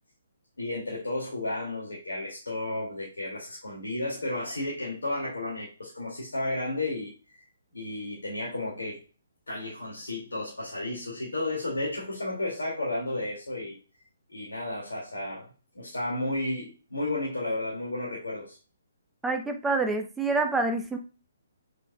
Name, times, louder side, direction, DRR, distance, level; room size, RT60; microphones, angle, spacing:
voice 1, 0.6-7.4 7.7-9.0 9.5-13.8 14.3-15.5 15.7-18.6, left 2 dB, 70° left, -5 dB, 2.7 m, -33 dB
voice 2, 19.2-21.0, right 3 dB, 5° right, 3 dB, 0.9 m, -27 dB
8.0 x 6.2 x 2.5 m, 0.36 s
figure-of-eight pair, 130°, 0 cm